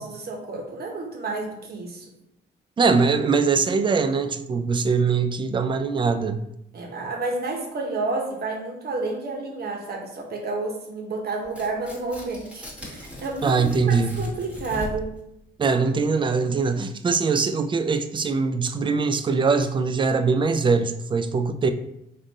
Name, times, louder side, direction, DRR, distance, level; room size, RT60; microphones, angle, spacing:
voice 1, 0.0-2.1 6.7-15.1, right 3 dB, 55° right, 1 dB, 1.0 m, -30 dB
voice 2, 2.8-6.4 13.4-14.1 15.6-21.7, right 4 dB, 25° right, 9 dB, 0.4 m, -22 dB
Tearing, 11.4-15.2, left 1 dB, 5° right, 1.2 m, -39 dB
3.5 x 2.6 x 4.1 m, 0.80 s
cardioid pair, 90°, 20 cm